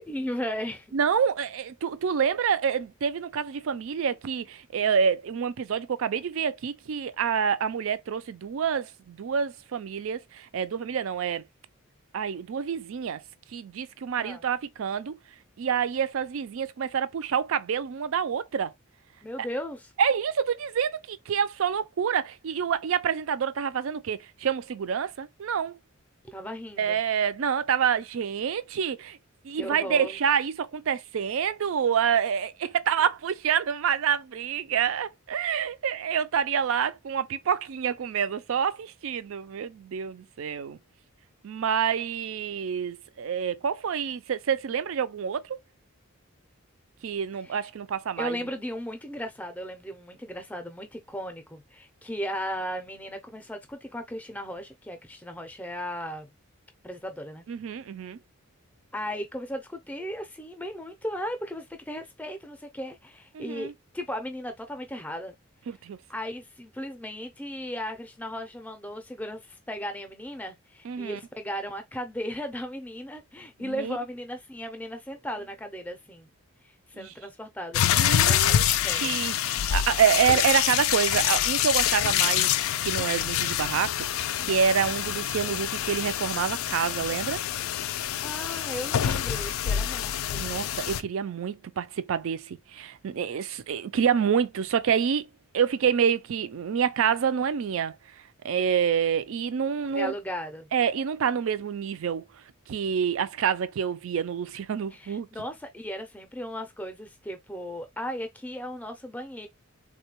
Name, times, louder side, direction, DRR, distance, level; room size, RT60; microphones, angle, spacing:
voice 1, 0.1-1.0 14.2-14.4 19.2-19.9 26.3-27.0 29.5-30.2 47.3-47.7 48.2-56.3 56.8-57.4 58.9-65.4 66.1-76.3 76.9-79.2 88.2-90.7 99.9-100.7 104.9-109.5, equal, 5° left, 0.5 m, -36 dB
voice 2, 0.9-11.4 12.1-13.2 13.5-15.2 15.6-18.7 19.4-19.5 20.0-25.8 26.8-29.2 29.4-40.8 41.4-45.6 47.0-48.4 57.5-58.2 63.3-63.7 65.7-66.0 70.8-71.2 73.6-74.0 77.0-77.1 77.9-78.6 78.9-82.5 82.8-87.4 90.3-95.3 95.5-98.0 98.4-100.1 100.7-102.2 102.7-105.3, right 7 dB, 70° right, 0.4 m, -27 dB
sound 1, 77.7-91.0, left 11 dB, 75° left, 0.3 m, -26 dB
3.6 x 2.2 x 2.9 m
head